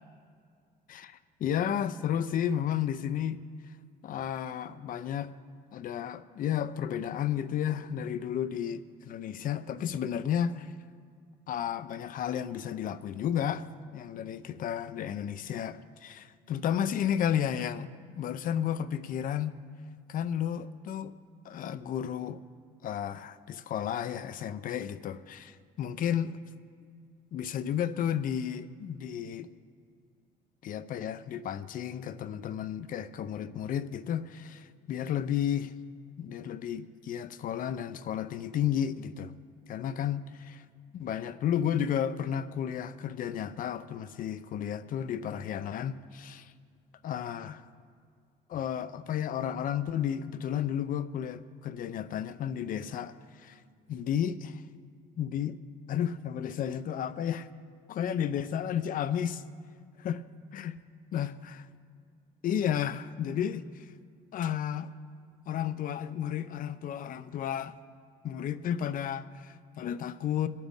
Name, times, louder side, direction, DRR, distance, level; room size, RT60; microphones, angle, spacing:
voice 1, 0.9-3.4 4.0-5.3 5.7-10.7 11.5-13.7 13.9-19.6 20.1-21.1 21.4-22.4 22.8-26.4 27.3-29.5 30.6-35.7 36.2-39.3 39.7-40.6 40.9-46.5 47.0-47.7 48.5-53.6 53.9-54.6 55.2-55.6 55.9-57.5 57.9-59.4 60.0-60.2 60.5-60.8 61.1-61.6 62.4-63.9 64.3-64.9 65.5-67.8 68.2-70.5, left 9 dB, 55° left, 0.6 m, -32 dB
21.5 x 9.2 x 3.7 m
cardioid pair, 110°, 17 cm